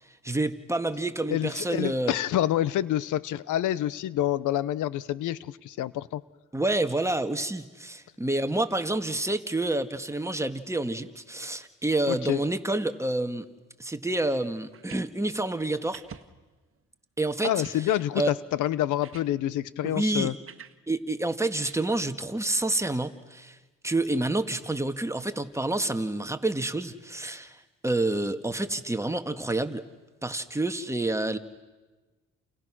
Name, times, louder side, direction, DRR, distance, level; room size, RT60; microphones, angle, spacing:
voice 1, 0.2-2.1 6.5-13.5 13.8-16.0 17.2-17.5 18.2-18.3 19.8-20.3 20.9-23.6 23.8-29.8 30.2-31.4, right 2 dB, 10° right, 8 dB, 1.7 m, -28 dB
voice 2, 1.3-6.2 12.1-12.4 17.4-20.3, left 12 dB, 80° left, 18 dB, 0.9 m, -27 dB
sound 1, 14.7-15.1 15.9-16.3 16.8-16.9 17.5-17.8 18.7-18.8 19.0-19.3 20.5-20.8 21.6-21.8, right 7 dB, 45° right, 1.5 m, -45 dB
30.0 x 29.0 x 6.2 m, 1.2 s
cardioid pair, 90°, 30 cm